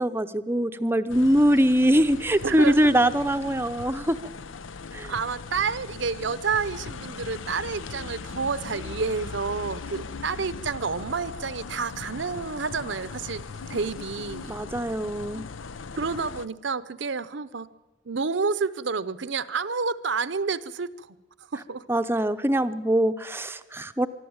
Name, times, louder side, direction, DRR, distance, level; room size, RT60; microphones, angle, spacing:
voice 1, 0.0-4.2 4.9-5.1 14.5-15.4 21.9-24.1, equal, 10° right, 9 dB, 0.6 m, -23 dB
sound 1, 1.1-16.5, left 4 dB, 90° left, 0.6 m, -39 dB
voice 2, 2.4-3.0 5.1-13.4 13.7-14.5 16.0-17.7 18.1-21.1 21.5-21.8, right 5 dB, 70° right, 15 dB, 0.8 m, -29 dB
24.5 x 12.0 x 8.7 m, 1.1 s
head